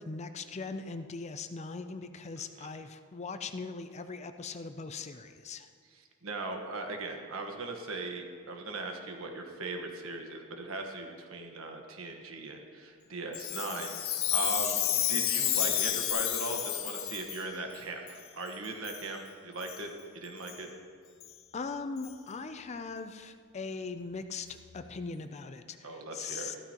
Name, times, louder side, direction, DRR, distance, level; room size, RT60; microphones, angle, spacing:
voice 1, 0.0-5.7 21.5-24.5 24.7-26.6, left 4 dB, 30° left, 9 dB, 0.5 m, -40 dB
voice 2, 2.4-2.7 5.9-20.7 25.8-26.6, right 2 dB, 70° right, 3 dB, 1.3 m, -39 dB
Chime, 13.3-17.4 18.1-18.2 18.8-19.0 19.6-19.8 20.5-20.6 21.2-21.3 22.0-22.1, left 11 dB, 65° left, 0.7 m, -31 dB
14.0 x 12.5 x 3.0 m, 2.1 s
head